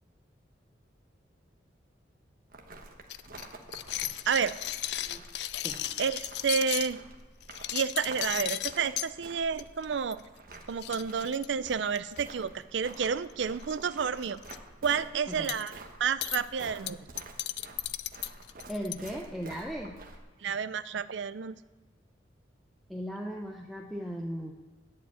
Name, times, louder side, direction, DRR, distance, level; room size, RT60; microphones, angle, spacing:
sound 1, 2.5-20.2, right 2 dB, 50° right, 1.2 m, -49 dB
sound 2, 3.1-6.9 7.4-9.1 9.6-9.8 10.1-10.2 10.5-10.6 10.8-12.2 12.9-13.3 13.6-13.8 14.1-14.6 15.5-15.7 16.2-16.4 16.9-19.1, left 14 dB, 60° left, 0.3 m, -35 dB
voice 1, 6.0-7.0 7.7-10.2 10.7-14.4 14.8-15.7 16.0-17.0 20.4-21.6, right 6 dB, 75° right, 15 dB, 0.5 m, -30 dB
voice 2, 18.7-20.0 22.9-24.5, equal, ahead, -1 dB, 0.7 m, -37 dB
11.0 x 4.9 x 8.1 m, 1.3 s
head